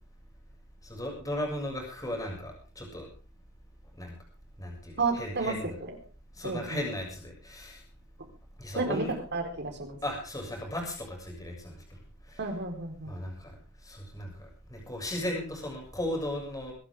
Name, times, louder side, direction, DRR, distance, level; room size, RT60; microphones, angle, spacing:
voice 1, 0.8-3.1 4.0-4.2 4.6-5.7 6.3-7.8 8.6-9.1 10.0-11.8 12.3-12.4 13.1-13.6 13.8-16.7, left 1 dB, 15° left, 0 dB, 7.0 m, -36 dB
voice 2, 5.0-6.0 6.4-6.9 8.7-10.0 12.4-13.2, right 3 dB, 50° right, 4 dB, 4.5 m, -32 dB
24.5 x 12.0 x 3.7 m, 0.36 s
head